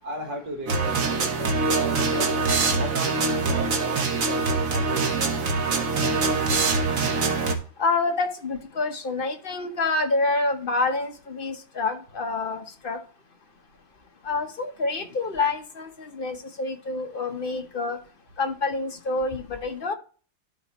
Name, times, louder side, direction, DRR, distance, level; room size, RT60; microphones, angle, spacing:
voice 1, 0.0-6.4, right 1 dB, 65° right, 1 dB, 2.0 m, -37 dB
sound 1, 0.7-7.5, right 4 dB, 50° right, 1.4 m, -24 dB
voice 2, 7.8-13.0 14.2-18.0 18.4-19.9, left 3 dB, 40° left, 5 dB, 0.8 m, -27 dB
12.0 x 5.0 x 3.0 m, 0.39 s
omnidirectional pair, 2.1 m